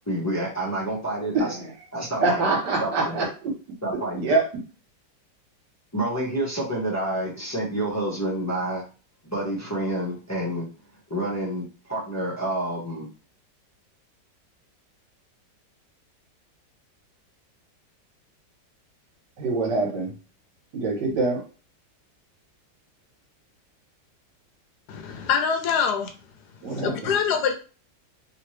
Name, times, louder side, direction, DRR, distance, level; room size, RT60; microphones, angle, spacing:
voice 1, 0.1-1.5 1.9-2.4 2.8-3.2 3.8-4.3 5.9-8.8 9.2-10.7 11.1-11.6 11.9-13.1, right 1 dB, 15° left, -5 dB, 0.8 m, -28 dB
voice 2, 1.3-1.7 2.2-3.3 4.1-4.5 19.4-20.1 20.7-21.4 26.6-27.1, right 3 dB, 75° right, -1 dB, 1.8 m, -24 dB
voice 3, 24.9-26.1 26.8-27.5, left 6 dB, 75° left, 5 dB, 1.1 m, -24 dB
3.2 x 2.9 x 3.1 m, 0.35 s
omnidirectional pair, 1.9 m